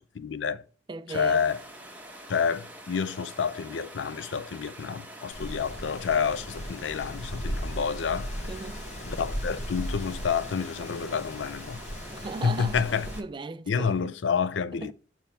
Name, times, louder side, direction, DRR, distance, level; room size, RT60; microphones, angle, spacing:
voice 1, 0.1-0.6 1.1-1.6 2.3-8.5 9.0-11.8 12.4-13.1 13.7-14.9, left 6 dB, 80° left, 0.4 m, -29 dB
voice 2, 0.9-1.4 8.5-8.8 12.1-12.9 13.1-14.1 14.8-14.9, right 3 dB, 25° right, 0.4 m, -37 dB
sound 1, 1.1-13.2, right 1 dB, 10° right, 1.0 m, -46 dB
Wind, 5.3-13.2, equal, 40° left, 0.8 m, -37 dB
6.9 x 3.0 x 5.4 m
head